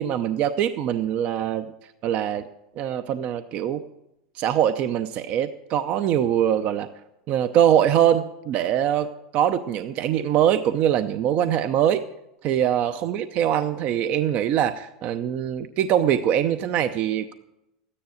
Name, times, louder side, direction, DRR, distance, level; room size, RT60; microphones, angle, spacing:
voice 1, 0.0-1.7 2.0-2.5 2.8-3.9 4.3-6.9 7.3-12.0 12.4-17.3, right 10 dB, 45° right, 10 dB, 0.6 m, -23 dB
13.5 x 10.0 x 6.4 m, 0.87 s
supercardioid pair, 120°, 3 cm